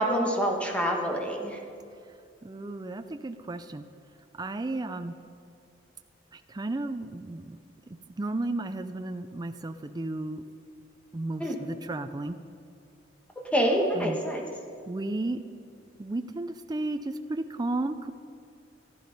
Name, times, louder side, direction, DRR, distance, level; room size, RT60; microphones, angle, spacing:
voice 1, 0.0-1.6 11.4-11.6 13.5-14.4, equal, 5° left, 0 dB, 1.5 m, -26 dB
voice 2, 2.4-3.8 4.4-5.2 6.3-7.6 8.2-10.4 11.1-12.4 13.9-14.2 14.9-15.4 16.0-18.1, right 2 dB, 20° right, 9 dB, 0.4 m, -33 dB
14.5 x 11.5 x 5.3 m, 2.4 s
head